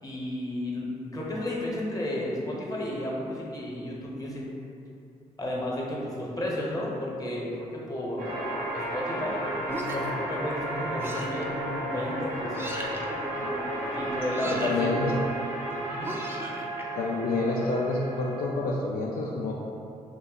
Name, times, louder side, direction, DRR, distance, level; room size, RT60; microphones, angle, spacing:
voice 1, 0.0-4.5 5.4-8.4 8.7-9.4 9.9-11.5 11.9-12.8 13.9-14.9 15.9-16.2, left 1 dB, 20° left, -3 dB, 0.9 m, -33 dB
sound 1, 8.2-18.4, right 1 dB, 90° right, 0.6 m, -33 dB
sound 2, 9.7-10.2 11.0-11.4 12.5-13.1 14.3-14.9 16.0-16.8, right 1 dB, 15° right, 0.5 m, -37 dB
voice 2, 14.4-15.1 16.9-19.5, left 3 dB, 60° left, -3 dB, 0.4 m, -28 dB
2.8 x 2.1 x 3.9 m, 2.6 s
hypercardioid pair, 40°, 17 cm